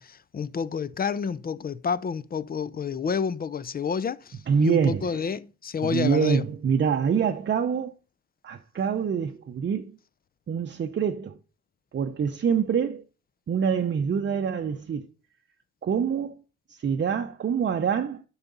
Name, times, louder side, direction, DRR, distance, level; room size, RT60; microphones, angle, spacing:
voice 1, 0.0-6.4, left 6 dB, 30° left, 0.5 m, -29 dB
voice 2, 4.5-5.3 5.8-8.0 8.4-9.9 10.5-11.4 11.9-13.0 13.5-15.1 15.8-16.3 16.7-18.2, right 7 dB, 40° right, 0.7 m, -25 dB
9.0 x 5.9 x 3.9 m
cardioid pair, 90°, 30 cm